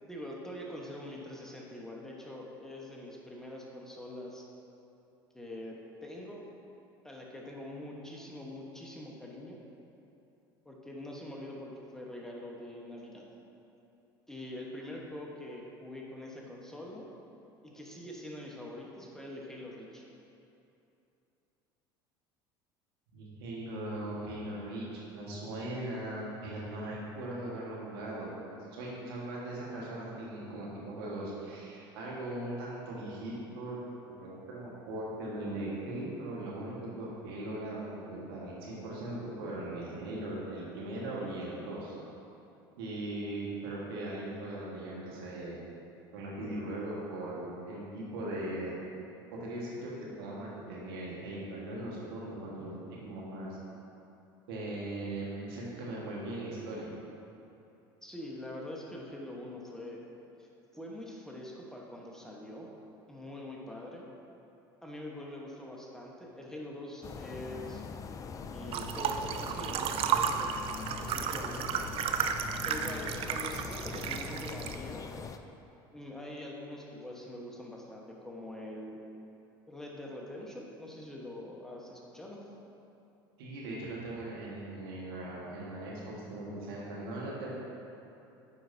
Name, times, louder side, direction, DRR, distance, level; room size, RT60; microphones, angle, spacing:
voice 1, 0.1-4.4 5.3-6.5 7.0-9.6 10.6-13.2 14.3-17.1 17.6-20.0 58.0-60.0 60.4-60.5 60.7-62.7 63.1-64.0 64.8-67.8 68.5-70.5 71.0-71.8 72.6-75.3 75.9-79.0 79.7-82.4, left 1 dB, 5° left, -3 dB, 1.1 m, -44 dB
voice 2, 23.1-28.3 28.7-33.8 34.1-41.9 42.8-45.6 46.1-48.8 49.3-49.9 50.2-53.5 54.5-56.9 83.4-85.9 86.3-87.5, right 1 dB, 80° right, -5 dB, 1.5 m, -39 dB
sound 1, 67.0-75.4, left 5 dB, 30° left, 0.4 m, -43 dB
sound 2, 68.7-74.8, right 7 dB, 50° right, 0.4 m, -33 dB
9.5 x 4.6 x 2.7 m, 2.8 s
hypercardioid pair, 80°, 12 cm